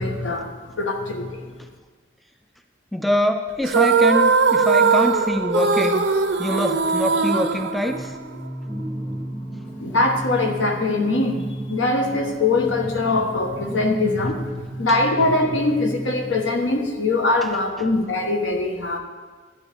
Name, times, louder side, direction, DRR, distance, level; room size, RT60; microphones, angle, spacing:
voice 1, 0.0-1.4 9.8-19.0, left 2 dB, 85° left, 3 dB, 1.2 m, -22 dB
voice 2, 2.9-6.0 6.4-8.2 8.7-9.4 17.4-17.5 17.8-17.9, left 1 dB, ahead, 6 dB, 0.3 m, -24 dB
sound 1, 3.6-8.5, right 4 dB, 75° right, 0.6 m, -20 dB
Singing, 7.8-16.7, right 1 dB, 50° left, 1.8 m, -34 dB
11.5 x 8.9 x 3.4 m, 1.4 s
head